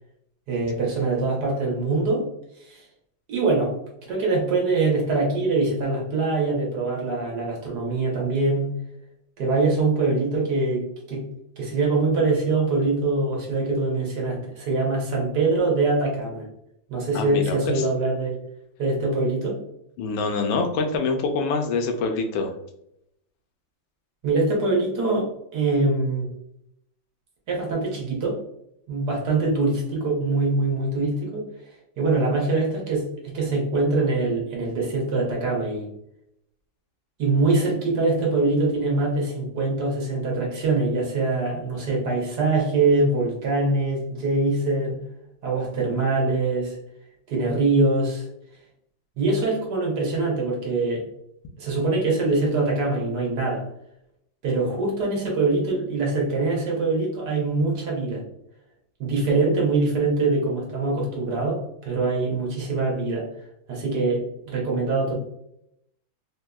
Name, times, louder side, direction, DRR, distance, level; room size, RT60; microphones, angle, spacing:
voice 1, 0.5-2.3 2.6-2.8 3.3-3.7 4.1-8.7 9.4-11.3 11.6-16.5 16.9-18.4 18.8-19.6 24.2-26.3 27.5-28.4 28.9-31.5 32.0-35.9 37.2-45.0 45.4-46.8 47.3-48.3 49.2-51.1 51.6-53.7 54.4-58.2 59.0-63.3 63.7-65.2, right 3 dB, 60° right, -3 dB, 1.4 m, -23 dB
voice 2, 17.1-17.8 20.0-22.5, left 4 dB, 85° left, 5 dB, 1.3 m, -25 dB
3.5 x 2.6 x 2.2 m, 0.79 s
omnidirectional pair, 2.1 m